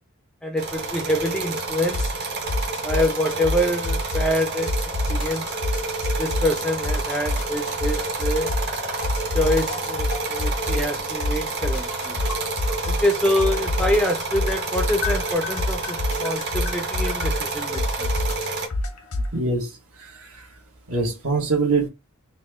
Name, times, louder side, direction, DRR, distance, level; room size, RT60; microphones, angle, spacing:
voice 1, 0.4-2.1 2.8-5.6 6.2-8.6 9.3-12.2 12.9-18.1, left 1 dB, 5° left, 0.4 m, -25 dB
sound 1, 0.6-18.7, right 3 dB, 50° right, 1.0 m, -29 dB
sound 2, 1.9-2.2 2.5-4.4 4.7-6.6 6.8-8.8 9.0-13.1 13.4-19.3, left 1 dB, 85° left, 0.8 m, -26 dB
voice 2, 19.3-20.5 20.9-21.9, right 3 dB, 70° right, 1.5 m, -24 dB
4.1 x 2.2 x 3.6 m
head